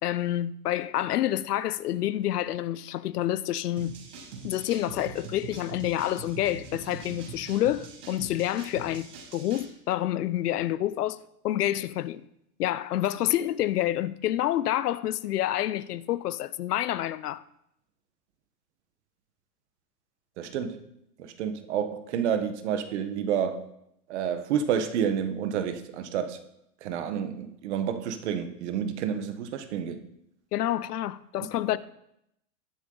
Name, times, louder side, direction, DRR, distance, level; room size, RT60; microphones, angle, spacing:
voice 1, 0.0-4.0 4.4-11.2 11.4-12.2 12.6-17.4 30.5-31.8, left 13 dB, 75° left, 0.8 m, -28 dB
sound 1, 3.8-9.7, right 5 dB, 80° right, 6.1 m, -43 dB
voice 2, 20.4-20.8 21.2-23.6 24.1-26.4 26.8-30.0, right 8 dB, 45° right, 1.3 m, -29 dB
20.0 x 7.1 x 4.0 m
supercardioid pair, 165°, 47 cm